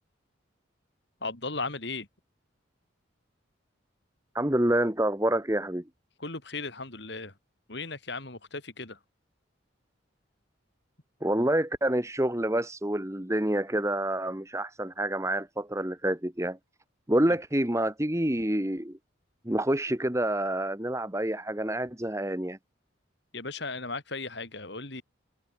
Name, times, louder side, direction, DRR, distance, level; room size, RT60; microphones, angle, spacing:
voice 1, 1.2-2.1 6.2-7.3 7.7-9.0 23.3-25.0, left 3 dB, 55° left, 3.4 m, -36 dB
voice 2, 4.3-5.8 11.2-16.6 17.1-19.0 19.4-22.6, right 1 dB, 15° right, 1.6 m, -27 dB
head